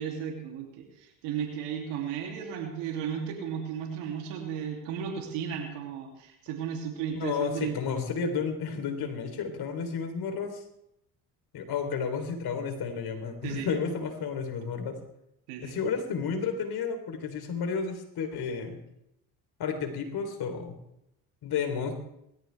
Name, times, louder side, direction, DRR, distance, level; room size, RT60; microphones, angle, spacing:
voice 1, 0.0-7.8 13.4-13.7 15.5-15.8, right 8 dB, 85° right, 1 dB, 2.9 m, -34 dB
voice 2, 7.2-10.6 11.5-15.0 15.6-18.8 19.6-20.8 21.4-21.9, left 6 dB, 65° left, 5 dB, 3.6 m, -32 dB
20.5 x 14.0 x 3.4 m, 0.81 s
supercardioid pair, 60°, 40 cm